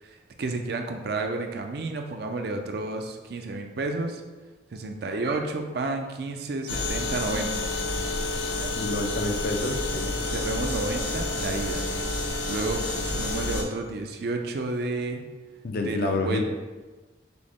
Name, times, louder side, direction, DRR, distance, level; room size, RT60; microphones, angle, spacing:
voice 1, 0.0-4.2 4.7-7.6 8.6-8.8 10.3-11.8 12.5-15.2 15.8-16.4, right 3 dB, 55° right, 4 dB, 0.4 m, -31 dB
sound 1, 6.7-13.6, left 2 dB, 80° left, 0.7 m, -29 dB
voice 2, 8.8-10.2 15.6-16.4, left 2 dB, 50° left, 4 dB, 0.4 m, -28 dB
5.9 x 2.1 x 3.5 m, 1.3 s
head